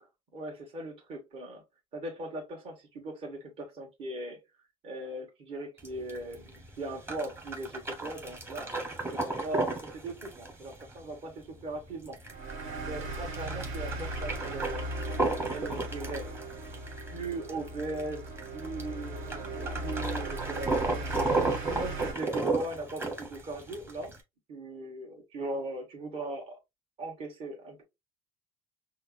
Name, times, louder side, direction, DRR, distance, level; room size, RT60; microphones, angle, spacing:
voice 1, 0.3-1.6 1.9-4.4 4.8-8.7 9.1-12.2 12.8-14.9 15.5-16.4 17.1-21.1 21.7-24.1 24.5-26.6 27.0-27.8, right 2 dB, 45° right, 1.6 m, -39 dB
sound 1, 5.8-24.2, right 3 dB, 20° right, 1.1 m, -34 dB
sound 2, 12.3-22.1, right 2 dB, 70° right, 1.5 m, -38 dB
5.5 x 2.0 x 2.5 m
cardioid pair, 120°, 13 cm